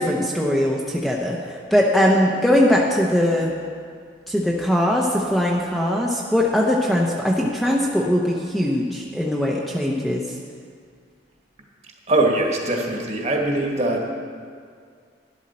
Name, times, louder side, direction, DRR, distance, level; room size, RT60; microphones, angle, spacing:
voice 1, 0.0-1.4 1.7-3.5 4.3-10.2, left 1 dB, ahead, -3 dB, 0.7 m, -20 dB
voice 2, 12.1-14.1, right 2 dB, 35° right, 0 dB, 1.5 m, -22 dB
11.5 x 11.5 x 4.2 m, 2.1 s
head